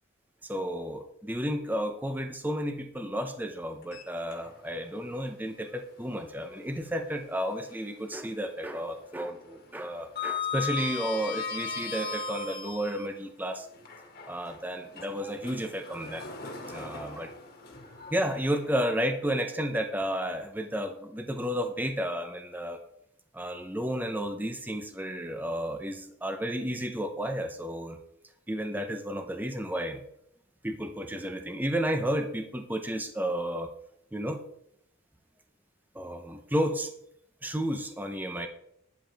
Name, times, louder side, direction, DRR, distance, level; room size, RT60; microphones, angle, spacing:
voice 1, 0.4-13.7 14.3-16.2 16.7-17.3 18.1-22.8 23.3-28.0 28.5-30.0 30.6-33.7 34.1-34.4 35.9-36.9 37.4-38.5, equal, 10° right, 6 dB, 0.8 m, -32 dB
Sliding door, 3.8-4.8 5.2-5.3 7.0-8.0 8.3-8.7 9.0-13.1 13.7-18.9, left 5 dB, 50° left, 2.0 m, -38 dB
11.5 x 10.0 x 3.5 m, 0.73 s
head